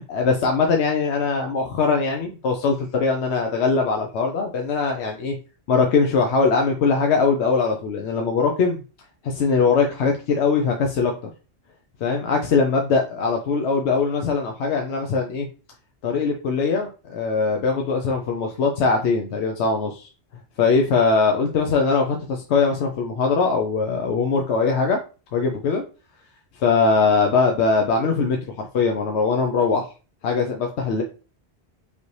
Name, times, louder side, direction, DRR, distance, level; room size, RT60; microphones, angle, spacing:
voice 1, 0.0-5.3 5.7-8.8 9.2-11.1 12.0-15.5 16.0-20.1 20.6-25.0 25.3-25.8 26.6-29.9 30.2-31.0, left 4 dB, 85° left, 2 dB, 0.9 m, -21 dB
5.2 x 2.7 x 3.2 m, 0.34 s
omnidirectional pair, 1.1 m